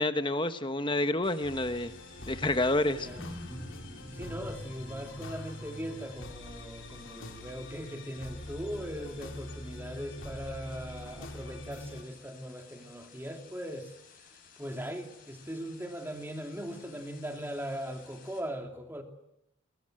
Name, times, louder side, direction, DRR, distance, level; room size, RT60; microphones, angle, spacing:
voice 1, 0.0-1.9 2.3-3.1, left 2 dB, 25° left, 1.1 m, -28 dB
sound 1, 1.2-18.4, left 6 dB, 45° left, 6.5 m, -57 dB
sound 2, 1.4-12.0, left 1 dB, 70° left, 3.4 m, -44 dB
Wild animals, 2.8-7.1, equal, 5° left, 4.1 m, -47 dB
voice 2, 4.1-13.9 14.6-19.0, equal, 10° right, 2.6 m, -39 dB
27.5 x 22.0 x 7.8 m
head